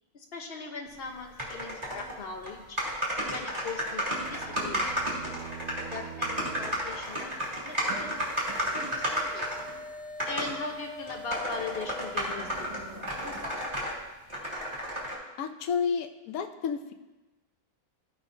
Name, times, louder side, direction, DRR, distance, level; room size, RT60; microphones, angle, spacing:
voice 1, 0.1-2.9 3.2-4.9 5.9-8.2 8.6-9.5 10.3-13.8, left 4 dB, 45° left, 2 dB, 1.1 m, -40 dB
sound 1, 1.4-2.2 2.4-2.5 2.8-9.7 10.2-10.5 11.1-13.9 14.3-15.1, equal, 25° right, 2.5 m, -32 dB
sound 2, 3.5-7.4, right 7 dB, 65° right, 0.9 m, -45 dB
sound 3, 7.0-13.4, equal, 85° right, 3.2 m, -44 dB
voice 2, 15.4-16.9, left 6 dB, 70° left, 6 dB, 1.1 m, -31 dB
16.0 x 5.5 x 2.8 m, 1.1 s
omnidirectional pair, 1.6 m